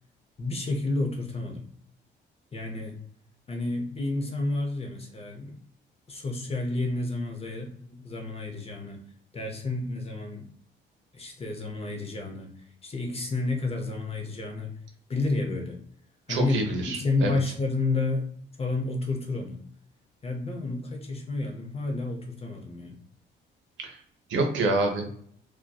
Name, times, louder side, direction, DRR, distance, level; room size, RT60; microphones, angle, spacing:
voice 1, 0.4-1.6 2.5-3.0 3.5-5.6 6.1-9.0 9.3-10.5 11.1-12.5 12.8-14.7 15.1-15.8 16.3-18.3 18.6-19.7 20.2-23.0, left 2 dB, 30° left, 3 dB, 0.6 m, -30 dB
voice 2, 16.3-17.4 23.8-24.0 24.3-25.1, right 2 dB, 70° right, 3 dB, 0.7 m, -27 dB
2.5 x 2.2 x 2.3 m, 0.62 s
cardioid pair, 90°, 20 cm